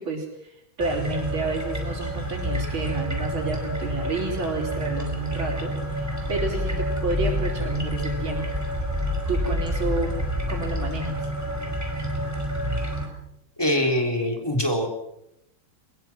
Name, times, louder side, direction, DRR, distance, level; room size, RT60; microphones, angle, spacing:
voice 1, 0.0-8.6 9.3-11.3, right 3 dB, 80° right, -5 dB, 4.5 m, -30 dB
sound 1, 0.8-13.1, equal, 10° right, 4.8 m, -28 dB
voice 2, 13.6-14.9, left 1 dB, 10° left, 2 dB, 3.7 m, -23 dB
23.0 x 21.5 x 6.2 m, 0.81 s
omnidirectional pair, 2.2 m